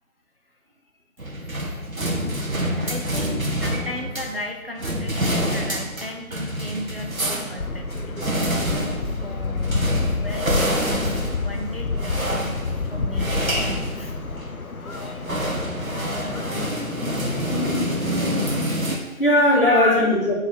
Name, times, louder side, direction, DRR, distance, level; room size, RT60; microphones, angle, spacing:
sound 1, 1.2-4.4 4.8-14.6 14.9-19.0, equal, 70° right, 1.7 m, -27 dB
voice 1, 1.9-2.9 12.9-13.0 16.1-16.3 18.7-20.4, left 1 dB, 40° left, -5 dB, 2.0 m, -22 dB
voice 2, 2.5-8.2 9.2-12.5 12.9-13.4 13.9-14.2 15.8-16.0 19.1-19.2 19.6-19.9, left 1 dB, 40° right, 2 dB, 0.7 m, -34 dB
sound 2, 7.6-18.7, left 3 dB, 75° left, 0.9 m, -28 dB
6.7 x 4.7 x 6.1 m, 1.0 s
figure-of-eight pair, 180°, 43 cm